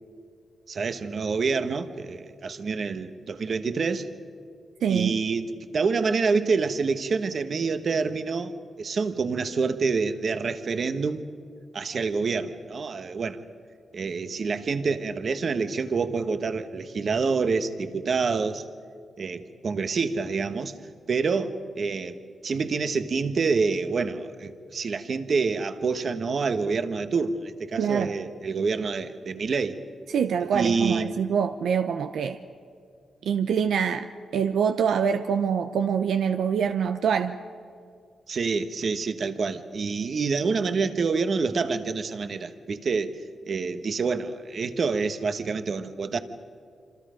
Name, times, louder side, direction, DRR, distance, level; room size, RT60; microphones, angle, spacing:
voice 1, 0.7-4.1 4.9-11.2 11.7-13.4 13.9-18.6 19.2-20.7 21.1-29.8 30.5-31.2 38.3-43.2 43.5-46.2, right 4 dB, 50° right, 1.3 m, -27 dB
voice 2, 4.8-5.1 27.8-28.1 30.1-32.4 33.2-34.1 34.3-37.3, right 7 dB, 85° right, 0.7 m, -25 dB
27.5 x 26.5 x 5.1 m
cardioid pair, 105°, 0 cm